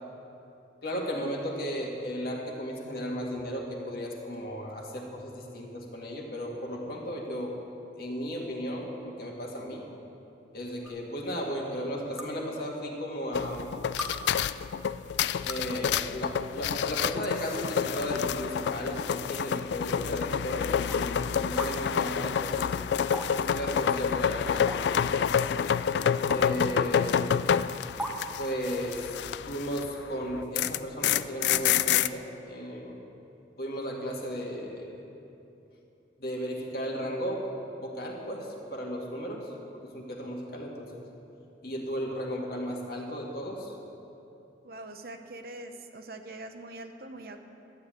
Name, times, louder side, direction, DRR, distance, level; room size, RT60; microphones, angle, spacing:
voice 1, 0.8-7.6 8.0-9.8 10.5-13.7 15.4-22.8 23.3-24.9 26.3-27.7 28.4-33.0 33.6-35.0 36.2-37.5 37.8-41.0 41.6-43.8, equal, 55° left, -1 dB, 2.0 m, -35 dB
sound 1, 10.8-10.9 12.2-12.3 13.3-13.4 14.0-14.1 15.3-15.7 16.7-16.8 17.2-17.4 18.1-18.4 18.9-19.0 19.9-20.0 20.9-21.0 21.6-21.7 23.1-23.3 23.6-23.7 24.7-25.1 26.3-26.5 26.8-26.9 28.0-28.2, equal, ahead, 1.0 m, -37 dB
sound 2, 13.4-29.9 30.2-32.1, left 8 dB, 70° left, 0.3 m, -28 dB
voice 2, 44.6-47.4, right 2 dB, 55° right, 6 dB, 0.9 m, -43 dB
12.5 x 8.6 x 9.1 m, 2.8 s
head